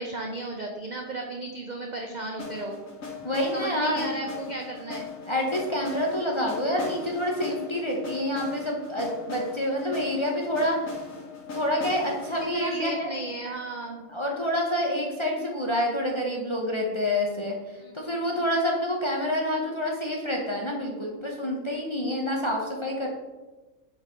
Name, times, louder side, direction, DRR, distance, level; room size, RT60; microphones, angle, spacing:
voice 1, 0.0-2.8 3.5-5.1 12.5-14.1 17.8-18.2, right 2 dB, 60° right, 2 dB, 0.4 m, -34 dB
sound 1, 2.4-14.3, left 4 dB, 70° left, 1.7 m, -39 dB
voice 2, 3.2-4.1 5.3-10.8 11.5-13.1 14.1-23.1, left 1 dB, 30° left, -2 dB, 0.6 m, -27 dB
5.2 x 3.9 x 5.1 m, 1.2 s
omnidirectional pair, 1.4 m